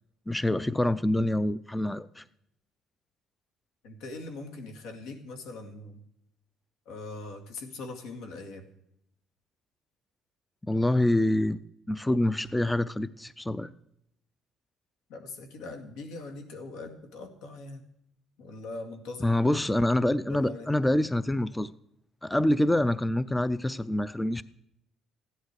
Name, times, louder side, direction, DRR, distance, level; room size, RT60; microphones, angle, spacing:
voice 1, 0.3-2.2 10.7-13.7 19.2-21.7 22.2-24.4, left 1 dB, 5° left, 16 dB, 0.4 m, -26 dB
voice 2, 3.8-6.0 6.9-8.7 15.1-17.8 18.4-19.4 20.3-20.7, left 3 dB, 90° left, 4 dB, 2.2 m, -41 dB
15.0 x 11.0 x 4.8 m, 0.78 s
cardioid pair, 130°, 0 cm